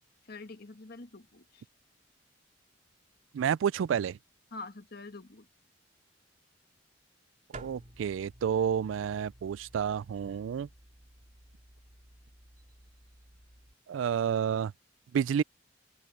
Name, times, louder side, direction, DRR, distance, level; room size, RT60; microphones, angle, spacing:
voice 1, 0.3-1.6 4.5-5.5, left 3 dB, 55° left, 1.6 m, -45 dB
voice 2, 3.3-4.2 7.5-10.7 13.9-14.7 15.1-15.4, right 8 dB, 90° right, 0.3 m, -30 dB
sound 1, 7.5-13.7, right 2 dB, 40° right, 2.8 m, -53 dB
open air
head